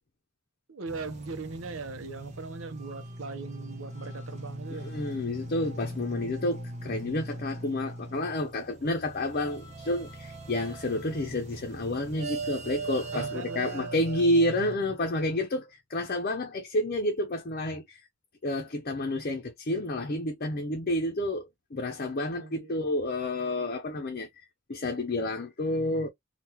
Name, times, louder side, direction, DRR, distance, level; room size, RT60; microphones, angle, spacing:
voice 1, 0.7-4.9 13.1-14.0 14.4-14.5 22.4-22.7, right 4 dB, 80° right, 0.7 m, -39 dB
sound 1, 0.8-14.8, right 2 dB, 35° right, 0.9 m, -40 dB
voice 2, 4.7-18.0 18.4-24.3 24.7-26.1, left 1 dB, 45° left, 0.7 m, -30 dB
3.7 x 2.4 x 2.8 m
head